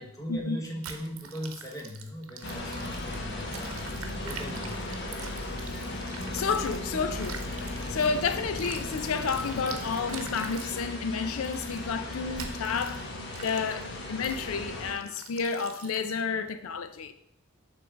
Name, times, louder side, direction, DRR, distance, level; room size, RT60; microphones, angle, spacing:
voice 1, 0.0-5.5, equal, 15° left, 1.1 m, -40 dB
sound 1, 0.8-6.8 7.1-10.8 11.4-11.8 12.3-13.0 13.3-13.8 14.2-14.4 15.0-16.2, right 6 dB, 90° right, 0.8 m, -44 dB
sound 2, 2.4-14.9, left 2 dB, 55° left, 1.3 m, -36 dB
voice 2, 6.3-13.1 13.4-17.1, left 5 dB, 85° left, 0.4 m, -31 dB
6.9 x 3.7 x 6.1 m
head